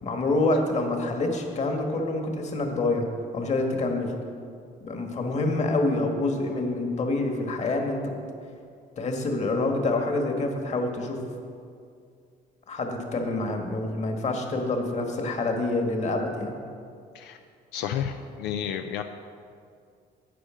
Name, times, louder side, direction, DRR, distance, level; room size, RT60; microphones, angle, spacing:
voice 1, 0.0-3.1 3.3-4.1 4.8-8.1 9.0-11.2 12.7-16.5, left 2 dB, 40° left, 3 dB, 1.6 m, -27 dB
voice 2, 17.7-19.0, left 9 dB, 90° left, 7 dB, 0.5 m, -31 dB
11.5 x 8.4 x 5.0 m, 2.3 s
cardioid pair, 110°, 17 cm